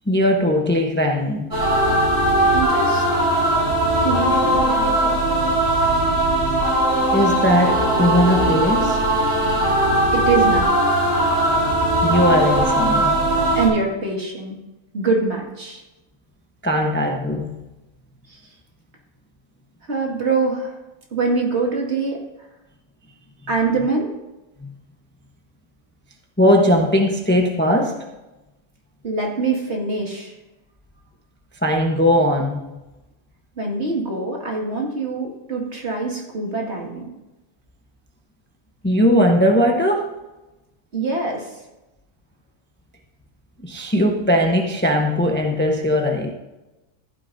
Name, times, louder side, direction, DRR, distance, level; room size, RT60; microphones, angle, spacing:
voice 1, 0.1-1.5 7.1-9.0 12.0-13.3 16.6-17.6 24.6-24.7 26.4-28.0 31.6-32.6 38.8-40.1 43.6-46.3, equal, 10° left, 1 dB, 0.8 m, -19 dB
sound 1, 1.5-13.7, right 1 dB, 70° right, 5.0 m, -19 dB
voice 2, 2.5-3.1 4.0-5.4 10.1-10.7 13.6-14.5 14.9-15.8 18.3-18.4 19.8-20.8 21.1-22.2 23.5-24.1 29.0-30.3 33.6-37.1 40.9-41.6, right 3 dB, 50° right, -1 dB, 2.4 m, -24 dB
14.5 x 12.0 x 2.7 m, 1.0 s
omnidirectional pair, 1.5 m